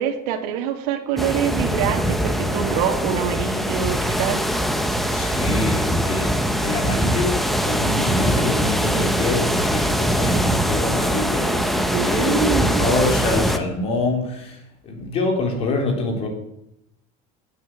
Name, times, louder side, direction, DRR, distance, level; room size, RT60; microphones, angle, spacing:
voice 1, 0.0-4.4 11.9-13.0, right 9 dB, 75° right, 3 dB, 2.2 m, -25 dB
sound 1, 1.2-13.6, equal, ahead, 0.8 m, -22 dB
voice 2, 5.0-14.6 14.8-16.3, left 2 dB, 30° left, 3 dB, 3.6 m, -25 dB
18.0 x 9.2 x 7.4 m, 0.83 s
cardioid pair, 175°, 19 cm